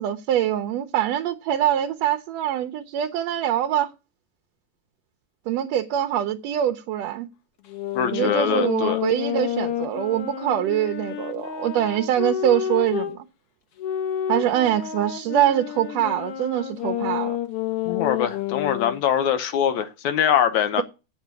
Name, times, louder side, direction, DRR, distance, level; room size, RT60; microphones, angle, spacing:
voice 1, 0.0-3.9 5.5-7.3 8.1-13.2 14.3-17.4, right 11 dB, 75° right, 1.7 m, -24 dB
sound 1, 7.7-13.2 13.8-19.0, left 10 dB, 60° left, 1.8 m, -29 dB
voice 2, 7.9-9.0 17.9-20.8, left 9 dB, 80° left, 2.2 m, -23 dB
7.9 x 7.4 x 7.3 m
omnidirectional pair, 3.4 m